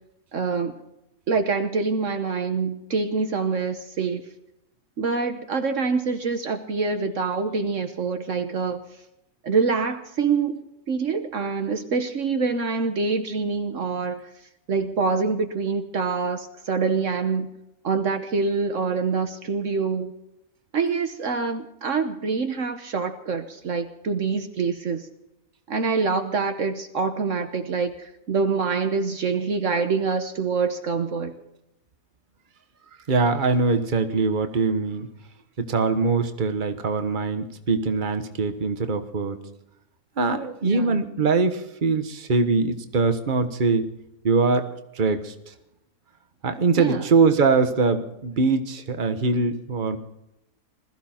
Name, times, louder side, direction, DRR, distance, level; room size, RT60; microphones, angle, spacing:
voice 1, 0.3-0.7 1.3-4.2 5.0-8.8 9.4-10.6 10.9-14.3 14.7-17.5 17.8-20.1 20.7-25.1 25.7-31.3 40.6-41.0 46.8-47.1, right 4 dB, 60° right, 7 dB, 1.4 m, -25 dB
voice 2, 33.1-35.1 35.6-39.4 40.2-43.9 44.2-44.6 44.9-45.3 46.4-50.0, right 4 dB, 35° right, 8 dB, 1.3 m, -22 dB
21.0 x 14.5 x 4.4 m, 0.86 s
omnidirectional pair, 1.5 m